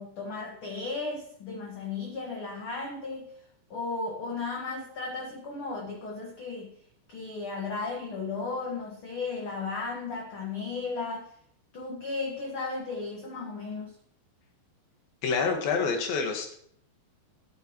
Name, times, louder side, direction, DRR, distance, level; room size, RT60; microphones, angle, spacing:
voice 1, 0.0-3.3 3.7-6.7 7.1-11.3 11.7-13.9, left 3 dB, 50° left, -1 dB, 1.8 m, -35 dB
voice 2, 15.2-16.5, left 5 dB, 80° left, 3 dB, 3.5 m, -27 dB
15.5 x 9.0 x 3.1 m, 0.65 s
omnidirectional pair, 4.1 m